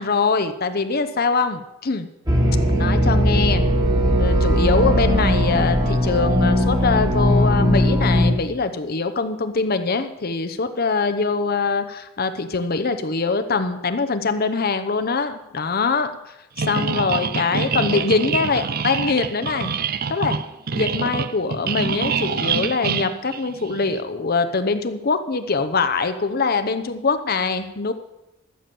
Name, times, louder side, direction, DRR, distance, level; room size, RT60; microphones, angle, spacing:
voice 1, 0.0-2.1 2.7-3.6 4.2-19.7 20.1-20.4 20.7-27.9, left 4 dB, 50° left, 9 dB, 0.9 m, -23 dB
sound 1, 2.3-8.3, equal, 20° right, 2.1 m, -18 dB
sound 2, 16.6-24.0, right 5 dB, 50° right, 0.6 m, -26 dB
14.5 x 7.1 x 7.7 m, 0.91 s
head